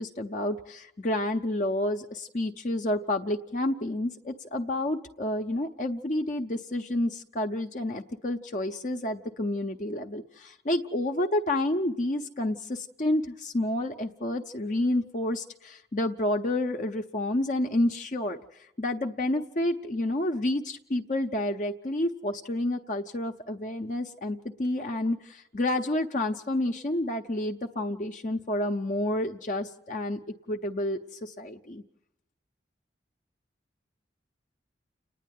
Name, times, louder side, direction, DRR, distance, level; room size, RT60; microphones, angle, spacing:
voice 1, 0.0-30.2 30.5-31.8, left 1 dB, 40° left, 4 dB, 0.7 m, -29 dB
29.5 x 10.0 x 9.3 m, 0.85 s
head